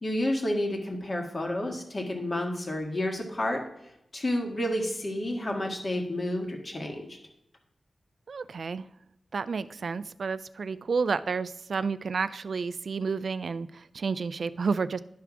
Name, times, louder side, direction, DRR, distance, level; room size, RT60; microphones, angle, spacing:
voice 1, 0.0-3.6 4.1-7.0, left 1 dB, 45° left, 2 dB, 1.7 m, -30 dB
voice 2, 8.3-8.9 9.3-15.0, right 5 dB, 75° right, 15 dB, 0.3 m, -30 dB
10.5 x 3.5 x 6.0 m, 0.81 s
wide cardioid pair, 70°, 0 cm